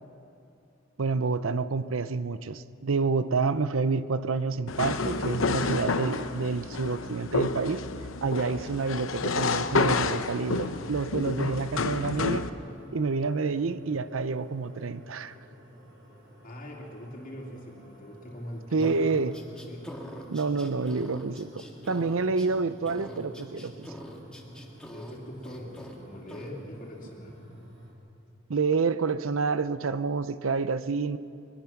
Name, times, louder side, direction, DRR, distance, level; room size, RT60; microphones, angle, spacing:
voice 1, 1.0-7.8 8.2-12.5 12.9-15.3 18.7-19.4 20.3-21.5 21.9-23.9 28.5-31.2, right 4 dB, 85° right, 14 dB, 0.7 m, -28 dB
sound 1, 4.7-12.5, left 4 dB, 80° left, 0.8 m, -29 dB
sound 2, 11.4-27.9, equal, 65° right, 3.9 m, -51 dB
voice 2, 16.4-19.9 24.8-27.4, equal, 45° left, -2 dB, 3.0 m, -42 dB
sound 3, 18.8-22.5 22.8-25.2 25.4-26.0 26.3-26.5, equal, 5° left, 2.0 m, -43 dB
22.0 x 21.5 x 5.9 m, 2.6 s
head